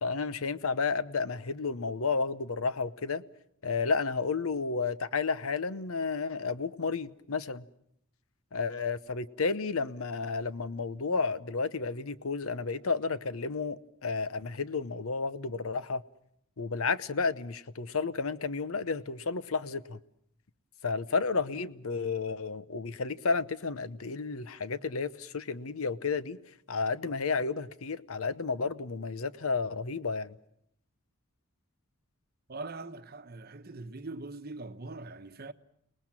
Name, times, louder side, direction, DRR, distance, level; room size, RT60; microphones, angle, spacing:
voice 1, 0.0-3.2 3.6-7.6 8.5-16.0 16.6-20.0 20.8-26.4 26.7-30.4, left 4 dB, 75° left, 0.8 m, -32 dB
voice 2, 32.5-35.5, right 3 dB, 45° right, 1.0 m, -42 dB
29.5 x 19.5 x 7.4 m
head